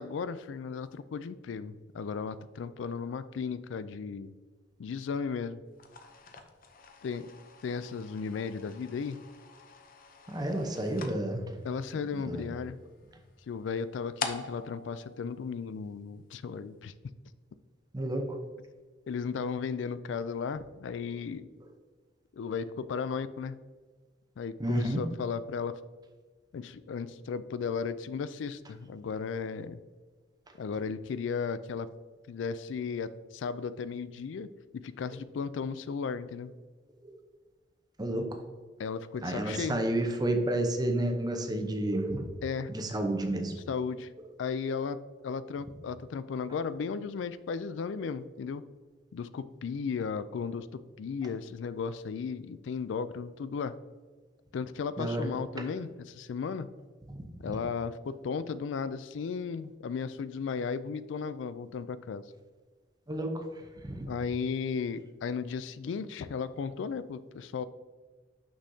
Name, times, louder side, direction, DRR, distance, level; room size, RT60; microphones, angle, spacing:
voice 1, 0.0-4.3 4.8-5.6 7.0-7.3 7.6-9.2 11.6-12.8 13.5-16.9 19.1-21.5 22.3-23.6 24.4-25.8 26.5-29.8 30.6-31.9 32.3-34.5 34.7-36.5 38.8-39.8 42.4-42.7 43.6-44.1 44.4-48.6 49.1-53.8 54.5-56.7 57.4-62.2 64.1-67.6, left 5 dB, 90° left, 15 dB, 0.4 m, -35 dB
sound 1, 5.7-16.1, left 5 dB, 50° left, 0.6 m, -45 dB
voice 2, 10.3-11.4 12.2-12.4 17.9-18.2 24.6-25.0 37.0-37.1 38.0-38.3 39.2-42.3 42.7-43.5 55.0-55.3 55.6-55.7 57.1-57.2 63.1-63.4 63.8-64.1, right 1 dB, 20° right, 4 dB, 0.7 m, -30 dB
6.3 x 6.2 x 2.7 m, 1.4 s
head